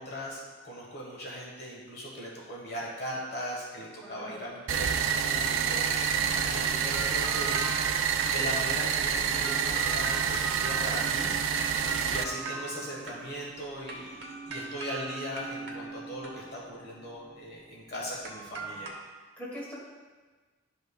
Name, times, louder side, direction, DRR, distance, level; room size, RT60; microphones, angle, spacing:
voice 1, 0.0-7.8 8.2-11.5 11.8-18.9, equal, 55° left, -3 dB, 1.2 m, -39 dB
voice 2, 4.0-4.4 6.2-6.4 19.4-19.7, equal, 10° left, -7 dB, 1.9 m, -42 dB
sound 1, 4.7-12.2, right 7 dB, 80° right, 0.4 m, -28 dB
sound 2, 6.6-18.9, right 4 dB, 55° right, 1.3 m, -41 dB
11.5 x 5.5 x 2.2 m, 1.3 s
head